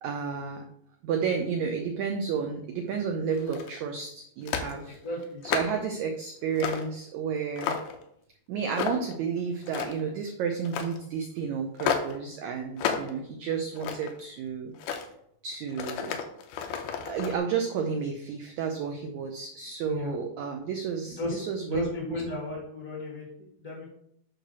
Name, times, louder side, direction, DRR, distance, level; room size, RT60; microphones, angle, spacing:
voice 1, 0.0-0.6 1.0-5.0 5.4-7.8 8.5-14.7 15.4-16.2 17.0-22.1, right 6 dB, 85° right, 4 dB, 1.6 m, -31 dB
sound 1, 3.3-3.8 4.5-4.7 5.2-5.8 6.6-6.9 7.3-8.0 8.7-9.2 9.6-10.1 10.6-11.0 11.8-12.2 12.8-13.1 13.5-14.2 14.7-15.1 15.7-17.4, left 7 dB, 70° left, 2.1 m, -32 dB
voice 2, 4.9-5.4 19.9-20.1 21.2-23.8, left 2 dB, 5° left, -4 dB, 1.9 m, -35 dB
9.0 x 3.3 x 6.0 m, 0.71 s
omnidirectional pair, 4.2 m